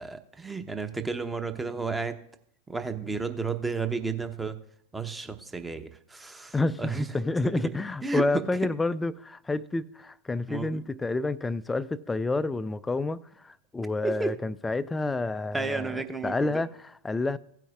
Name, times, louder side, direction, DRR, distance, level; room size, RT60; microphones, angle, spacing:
voice 1, 0.0-2.2 2.7-4.6 4.9-7.1 8.0-8.4 10.5-10.8 14.0-14.3 15.5-16.6, right 4 dB, 10° right, 0.8 m, -32 dB
voice 2, 6.5-16.7 17.0-17.4, left 2 dB, 10° left, 0.4 m, -29 dB
16.0 x 9.0 x 2.4 m
figure-of-eight pair, 90°, 0 cm